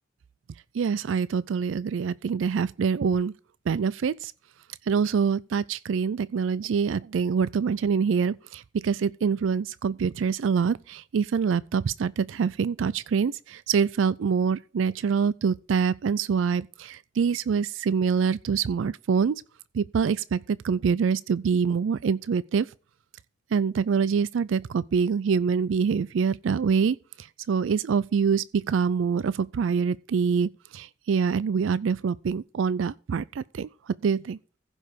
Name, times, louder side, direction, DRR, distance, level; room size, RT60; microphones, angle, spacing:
voice 1, 0.7-3.3 3.7-4.3 4.9-19.4 19.7-22.7 23.5-34.4, right 6 dB, 80° right, 0.4 m, -25 dB
15.5 x 5.4 x 4.9 m
head